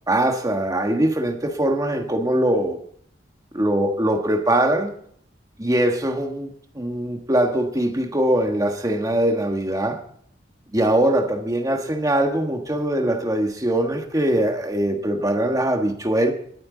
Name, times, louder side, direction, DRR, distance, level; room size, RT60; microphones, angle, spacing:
voice 1, 0.1-2.8 3.5-4.9 5.6-10.0 10.7-16.3, right 1 dB, 20° right, 5 dB, 1.3 m, -22 dB
20.0 x 8.7 x 3.9 m, 0.65 s
head